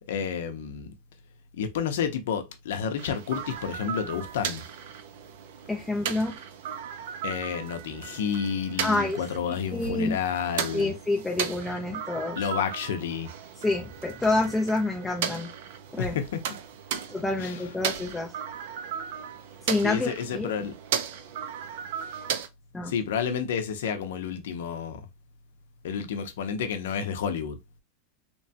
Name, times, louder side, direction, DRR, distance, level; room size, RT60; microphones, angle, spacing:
voice 1, 0.1-0.9 1.5-4.6 7.2-10.9 12.4-13.3 16.0-16.4 17.4-17.7 19.8-20.7 22.8-25.0 25.8-27.6, left 7 dB, 80° left, 0.6 m, -30 dB
sound 1, 3.0-22.5, right 8 dB, 60° right, 0.4 m, -36 dB
voice 2, 5.7-6.4 8.8-9.2 9.7-10.2 10.7-12.4 13.6-15.5 15.9-16.1 17.1-18.3 19.7-20.5 22.7-22.9, left 2 dB, 5° left, 0.4 m, -27 dB
3.0 x 2.2 x 2.7 m
supercardioid pair, 175°, 0 cm